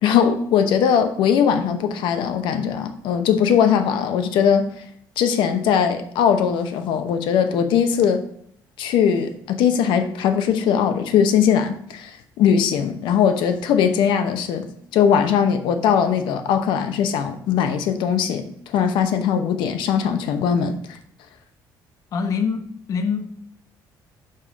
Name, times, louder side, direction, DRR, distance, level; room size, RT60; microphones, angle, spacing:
voice 1, 0.0-4.8 5.2-8.2 8.8-21.0, left 7 dB, 85° left, 0.7 m, -20 dB
voice 2, 22.1-23.3, left 5 dB, 45° left, 0.7 m, -24 dB
5.4 x 5.3 x 4.9 m
cardioid pair, 165°, 8 cm